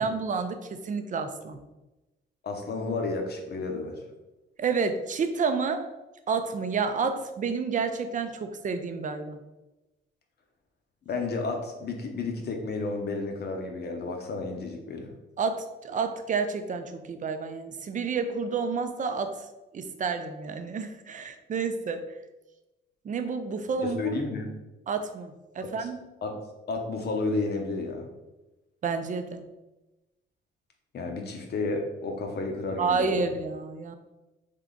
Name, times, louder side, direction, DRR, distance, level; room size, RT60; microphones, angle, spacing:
voice 1, 0.0-1.6 4.6-5.9 6.3-9.4 15.4-19.4 19.7-22.0 23.0-24.0 24.9-26.0 28.8-29.4 32.8-34.0, right 5 dB, 40° right, 8 dB, 0.5 m, -30 dB
voice 2, 2.4-3.9 11.1-15.1 23.8-24.5 25.8-25.9 26.2-26.4 26.7-28.1 30.9-33.2, left 3 dB, 55° left, 3 dB, 0.9 m, -31 dB
3.7 x 3.4 x 3.7 m, 1.0 s
cardioid pair, 90°, 20 cm